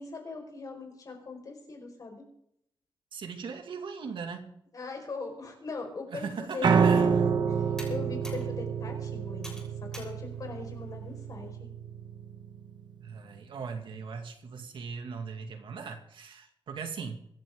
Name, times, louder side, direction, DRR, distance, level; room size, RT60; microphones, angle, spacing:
voice 1, 0.0-2.3 4.7-11.7, left 4 dB, 45° left, 2 dB, 5.1 m, -41 dB
voice 2, 3.1-4.5 6.1-7.2 13.0-17.2, right 5 dB, 70° right, 4 dB, 2.2 m, -39 dB
Computer keyboard, 6.3-11.5, left 1 dB, 5° left, 6.9 m, -51 dB
Piano, 6.6-12.8, right 6 dB, 55° right, 1.3 m, -28 dB
26.0 x 11.0 x 3.8 m, 0.73 s
wide cardioid pair, 150°, 9 cm